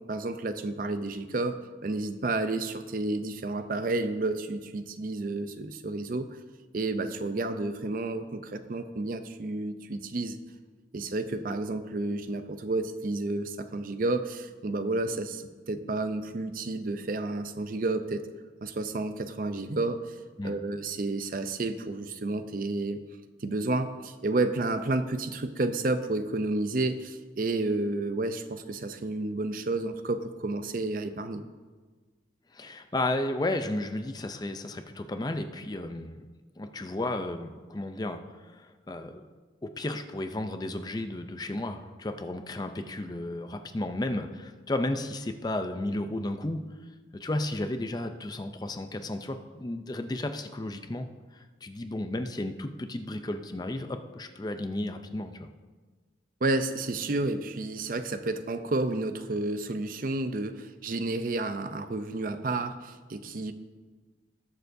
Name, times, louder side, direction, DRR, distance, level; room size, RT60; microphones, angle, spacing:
voice 1, 0.1-6.4 6.7-10.4 10.9-18.3 18.6-20.1 20.4-23.0 23.4-31.4 56.4-63.5, right 2 dB, 45° right, 9 dB, 0.5 m, -31 dB
voice 2, 32.5-36.3 36.6-39.3 39.6-46.6 47.1-51.1 51.3-55.5, left 1 dB, 20° left, 7 dB, 0.5 m, -33 dB
20.0 x 6.8 x 2.7 m, 1.4 s
head